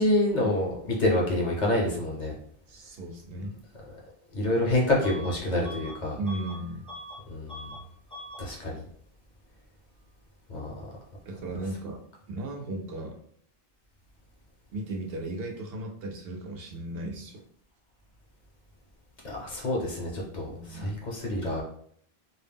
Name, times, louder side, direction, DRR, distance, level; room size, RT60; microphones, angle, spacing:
voice 1, 0.0-2.3 4.3-6.2 7.3-7.7 8.4-8.8 10.5-10.7 19.2-21.6, left 1 dB, 50° left, -2 dB, 0.7 m, -27 dB
voice 2, 2.7-3.6 6.2-6.9 11.3-12.0 12.3-13.2 14.7-17.4 20.5-21.0, right 1 dB, 70° right, 1 dB, 0.8 m, -36 dB
Bus / Alarm, 5.0-5.3 5.6-7.2 7.5-7.8 8.1-8.4, equal, 10° left, 0.4 m, -42 dB
2.2 x 2.0 x 3.4 m, 0.63 s
omnidirectional pair, 1.1 m